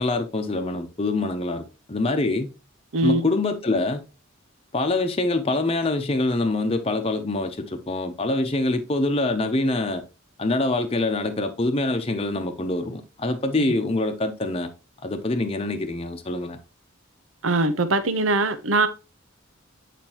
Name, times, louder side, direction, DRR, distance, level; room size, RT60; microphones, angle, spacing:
voice 1, 0.0-2.5 3.0-4.0 4.7-10.0 10.4-14.7 15.0-16.6, left 2 dB, 30° left, 0.8 m, -25 dB
voice 2, 17.4-18.9, right 2 dB, 80° right, 0.9 m, -21 dB
8.9 x 5.1 x 3.0 m
head